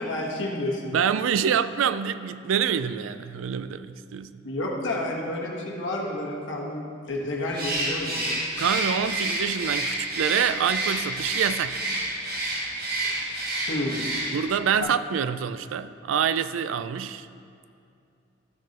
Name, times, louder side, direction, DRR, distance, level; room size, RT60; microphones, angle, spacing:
voice 1, 0.0-0.9 4.4-8.4 13.0-13.2 13.7-14.1, left 1 dB, 70° left, -2 dB, 1.3 m, -30 dB
voice 2, 0.9-4.4 8.6-11.8 14.3-17.3, right 7 dB, 90° right, 13 dB, 0.3 m, -26 dB
Bird, 7.5-14.6, right 2 dB, 50° right, 1.4 m, -29 dB
13.0 x 6.2 x 2.9 m, 2.5 s
head